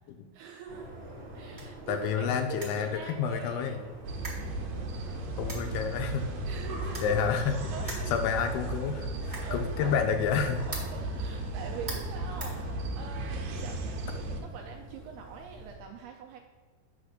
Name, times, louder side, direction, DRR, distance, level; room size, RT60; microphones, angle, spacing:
voice 1, 0.3-0.9 1.3-3.8 6.5-7.2 7.7-8.2 9.4-9.9 10.7-16.4, right 6 dB, 85° right, 2 dB, 2.3 m, -44 dB
sound 1, 0.7-15.8, right 1 dB, 45° right, 2.1 m, -47 dB
sound 2, 1.4-13.3, right 2 dB, 10° right, 1.2 m, -47 dB
voice 2, 1.9-3.8 5.4-6.3 7.0-10.6, left 7 dB, 85° left, 5 dB, 2.3 m, -29 dB
sound 3, 4.0-14.4, right 2 dB, 70° right, 2.3 m, -35 dB
8.7 x 4.1 x 6.4 m, 1.5 s
omnidirectional pair, 5.1 m